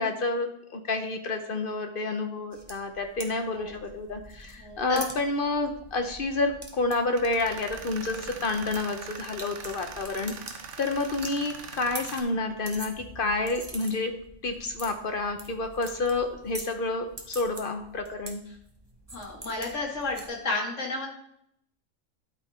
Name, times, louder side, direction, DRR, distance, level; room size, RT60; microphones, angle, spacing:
voice 1, 0.0-10.3 10.8-14.1 14.4-18.4, left 3 dB, 50° left, 6 dB, 0.8 m, -29 dB
sound 1, 2.5-20.3, right 2 dB, 20° right, 0.9 m, -45 dB
voice 2, 4.6-5.0 19.1-21.1, left 3 dB, 65° left, -1 dB, 2.3 m, -32 dB
Tools, 7.1-12.2, right 6 dB, 70° right, 1.1 m, -42 dB
11.5 x 4.1 x 4.2 m, 0.70 s
omnidirectional pair, 1.3 m